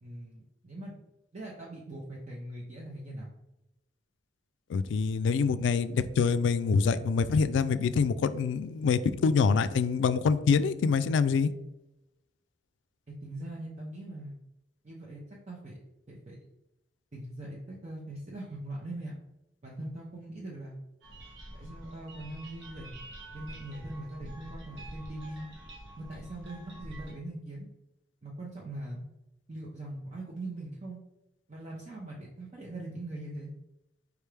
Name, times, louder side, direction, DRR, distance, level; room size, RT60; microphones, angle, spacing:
voice 1, 0.0-0.9 1.3-3.4 13.1-14.3 14.8-15.8 16.1-16.4 17.1-19.2 19.6-20.8 21.6-22.9 23.3-25.5 26.0-27.7 28.2-29.0 29.5-31.0 31.5-33.6, right 1 dB, 40° right, -3 dB, 0.6 m, -41 dB
voice 2, 4.7-11.5, left 5 dB, 80° left, 13 dB, 0.3 m, -25 dB
sound 1, 21.0-27.1, right 1 dB, 85° right, 1.3 m, -46 dB
4.8 x 3.4 x 3.2 m, 0.91 s
head